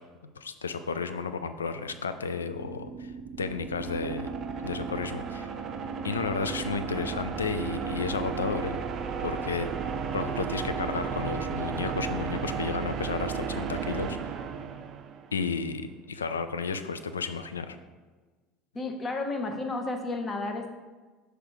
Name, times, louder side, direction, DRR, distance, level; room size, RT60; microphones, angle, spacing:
voice 1, 0.4-3.1 3.4-4.3 4.6-5.5 6.0-8.8 9.2-9.7 10.1-14.2 15.3-17.8, left 5 dB, 85° left, 10 dB, 0.3 m, -32 dB
sound 1, 2.3-15.4, right 6 dB, 45° right, 0.5 m, -34 dB
voice 2, 18.7-20.7, left 2 dB, 30° left, 4 dB, 0.9 m, -32 dB
6.4 x 3.4 x 4.5 m, 1.3 s
figure-of-eight pair, 70°, 0 cm